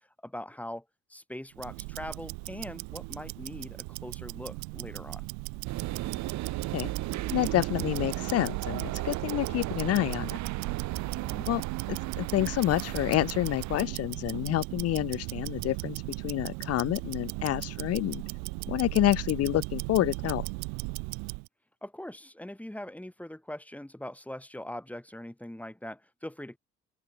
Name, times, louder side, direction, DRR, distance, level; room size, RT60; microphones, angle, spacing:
voice 1, 0.2-0.8 1.1-5.3 11.2-11.5 21.8-26.6, left 1 dB, 5° left, 4.0 m, -41 dB
Tick-tock, 1.5-21.5, right 36 dB, 85° right, 1.5 m, -37 dB
sound 1, 5.6-13.9, right 16 dB, 70° right, 2.1 m, -36 dB
voice 2, 7.3-10.4 11.5-11.6 12.2-18.2 18.7-20.5, left 15 dB, 55° left, 0.6 m, -28 dB
open air
supercardioid pair, 70°, 29 cm